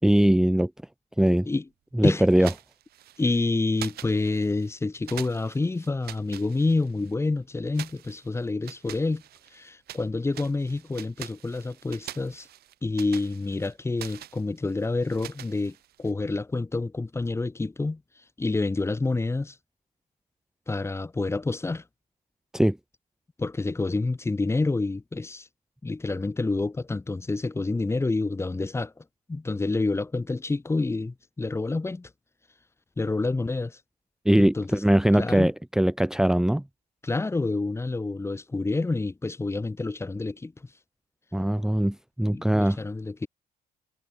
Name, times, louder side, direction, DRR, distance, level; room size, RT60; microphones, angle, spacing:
voice 1, 0.0-0.7 1.2-1.5 2.0-2.5 22.5-22.8 34.2-36.6 41.3-42.8, right 1 dB, 5° right, 1.1 m, -21 dB
sound 1, 2.3-3.4 3.7-4.7 5.1-7.1 7.7-10.1 10.3-16.1, right 13 dB, 70° right, 4.0 m, -44 dB
voice 2, 3.2-9.2 9.5-12.5 12.8-18.0 18.4-19.6 20.7-21.8 23.4-25.5 25.8-28.9 29.3-32.1 33.0-33.8 34.4-34.8 35.2-35.5 37.0-40.5 42.3-43.3, left 3 dB, 15° left, 1.8 m, -28 dB
cardioid pair, 110°, 17 cm